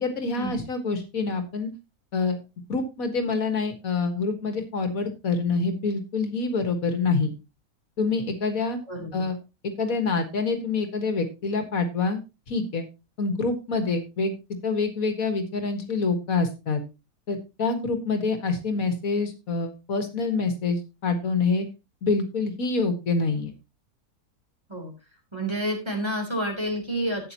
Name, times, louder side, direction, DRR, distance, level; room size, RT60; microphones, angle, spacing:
voice 1, 0.0-1.7 2.1-2.4 2.7-7.4 8.0-8.8 9.1-9.4 9.8-12.2 12.5-12.9 13.2-14.4 14.6-16.8 17.3-21.7 22.0-23.5, left 4 dB, 70° left, 7 dB, 2.0 m, -26 dB
voice 2, 8.9-9.2 24.7-24.9 25.3-27.3, equal, 20° right, 1 dB, 3.4 m, -29 dB
12.5 x 8.9 x 2.9 m, 0.27 s
omnidirectional pair, 1.5 m